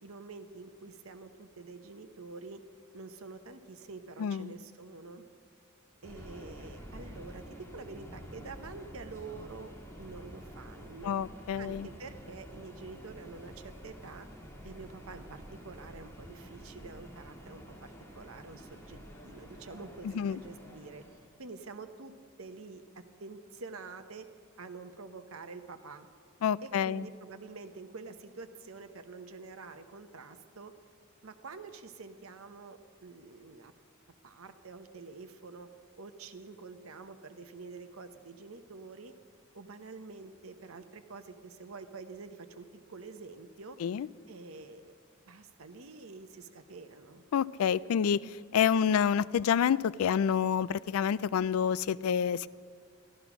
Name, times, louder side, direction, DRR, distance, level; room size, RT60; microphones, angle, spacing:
voice 1, 0.0-2.6 2.9-5.2 6.0-9.7 10.0-11.2 11.6-14.3 14.6-21.0 21.4-22.1 22.4-24.3 24.6-26.1 26.6-30.7 31.2-33.7 34.2-35.7 36.0-39.1 39.5-43.8 44.3-45.0 45.3-47.2, right 4 dB, 75° right, 9 dB, 0.9 m, -47 dB
voice 2, 4.2-4.5 11.0-11.9 20.0-20.4 26.4-27.1 43.8-44.1 47.3-52.5, left 8 dB, 85° left, 20 dB, 0.3 m, -28 dB
Subway metro underground, 6.0-21.4, equal, 15° left, 1.8 m, -49 dB
13.5 x 12.5 x 6.0 m, 2.1 s
head